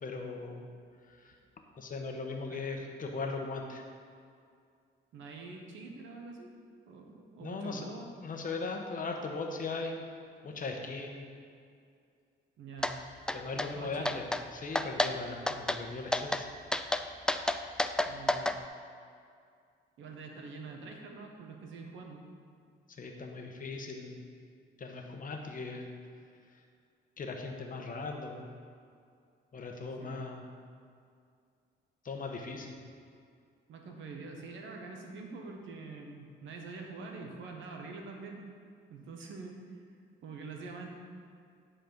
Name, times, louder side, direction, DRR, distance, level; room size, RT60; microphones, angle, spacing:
voice 1, 0.0-0.7 1.1-1.4 1.8-3.9 7.4-7.9 8.2-10.0 10.4-11.3 13.3-16.5 22.9-24.2 24.8-25.9 26.5-26.6 27.2-28.5 29.5-30.4 32.0-32.7, left 3 dB, 45° left, 2 dB, 1.1 m, -39 dB
voice 2, 5.1-6.6 6.9-8.1 12.6-13.0 13.7-14.2 18.1-18.6 20.0-22.2 30.0-30.3 33.7-38.4 38.9-39.8 40.2-40.9, right 4 dB, 75° right, 2 dB, 1.2 m, -45 dB
sound 1, 12.8-12.9 13.3-13.7 14.0-14.4 14.7-15.1 15.5-15.8 16.1-16.4 16.7-18.6, left 1 dB, 5° left, 0.3 m, -30 dB
10.5 x 4.4 x 5.2 m, 2.3 s
cardioid pair, 90°, 20 cm